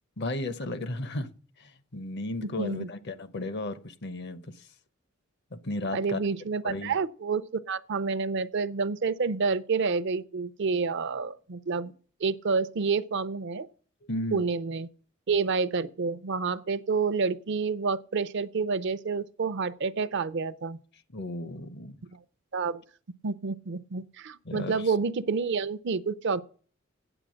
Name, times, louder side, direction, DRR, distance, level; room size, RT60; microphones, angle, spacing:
voice 1, 0.2-1.3 1.6-4.6 5.5-6.2 6.6-7.0 14.0-14.4 21.1-22.0 24.4-24.9, left 2 dB, 55° left, 0.8 m, -34 dB
voice 2, 2.4-2.9 5.9-11.9 12.2-13.7 14.3-14.9 15.3-20.8 22.1-22.2 22.5-22.8 23.2-26.4, right 4 dB, 60° right, 0.5 m, -29 dB
8.9 x 8.0 x 6.3 m
head